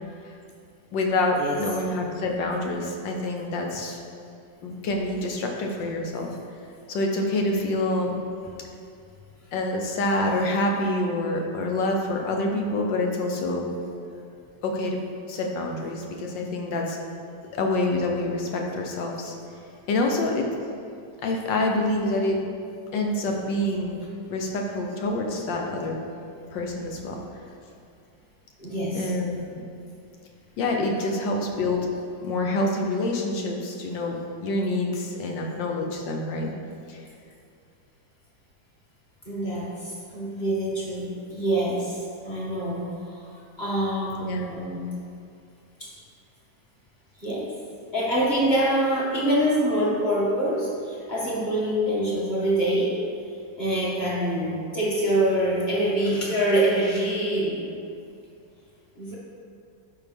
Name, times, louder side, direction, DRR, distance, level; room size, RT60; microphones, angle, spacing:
voice 1, 0.9-4.0 4.6-6.4 6.9-8.2 9.5-13.7 14.6-15.0 15.3-17.0 17.5-19.3 19.9-20.5 21.2-22.4 22.9-24.0 24.3-26.0 26.5-27.2 28.9-29.7 30.6-31.9 32.2-36.5 36.9-37.0 44.2-44.4, left 2 dB, 75° left, 1 dB, 1.6 m, -26 dB
voice 2, 28.6-29.1 39.3-43.3 43.6-45.0 45.8-45.9 47.2-47.5 47.9-53.0 53.6-57.7 59.0-59.2, right 1 dB, 25° left, -7 dB, 2.2 m, -25 dB
11.0 x 5.8 x 3.5 m, 2.5 s
omnidirectional pair, 2.0 m